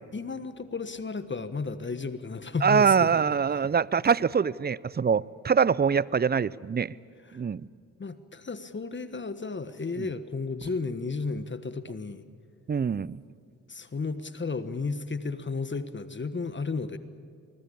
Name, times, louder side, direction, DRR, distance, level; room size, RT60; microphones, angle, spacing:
voice 1, 0.1-3.6 7.2-7.4 8.0-12.2 13.7-17.0, left 4 dB, 30° left, 12 dB, 1.5 m, -33 dB
voice 2, 2.6-6.9 7.3-7.6 12.7-13.2, right 6 dB, 25° right, 22 dB, 0.6 m, -24 dB
24.0 x 21.0 x 8.6 m, 2.1 s
hypercardioid pair, 45°, 36 cm